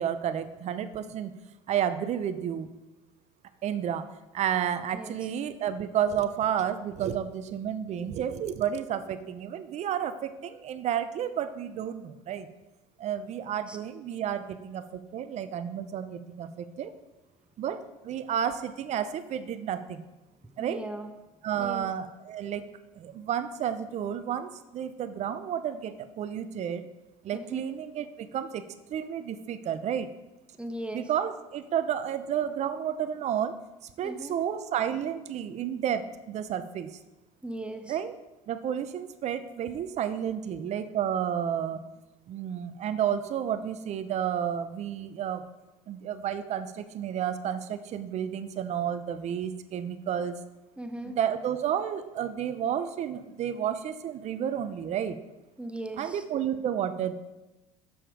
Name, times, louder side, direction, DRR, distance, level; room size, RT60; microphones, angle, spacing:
voice 1, 0.0-1.4 1.7-2.7 3.6-4.1 4.3-12.5 13.0-16.9 17.6-20.0 20.6-20.8 21.4-22.7 23.0-26.9 27.2-28.6 28.9-30.1 30.9-33.5 34.0-37.0 37.8-38.1 38.5-41.8 42.3-45.4 45.9-50.4 51.0-55.2 56.0-57.1, right 9 dB, 45° right, 12 dB, 0.6 m, -31 dB
voice 2, 20.6-21.1 21.5-21.9 27.3-27.7 30.6-31.1 34.0-34.4 37.4-38.0 50.8-51.2 55.6-56.2, right 1 dB, 5° right, 7 dB, 0.7 m, -38 dB
7.0 x 5.5 x 4.9 m, 1.0 s
supercardioid pair, 90°, 16 cm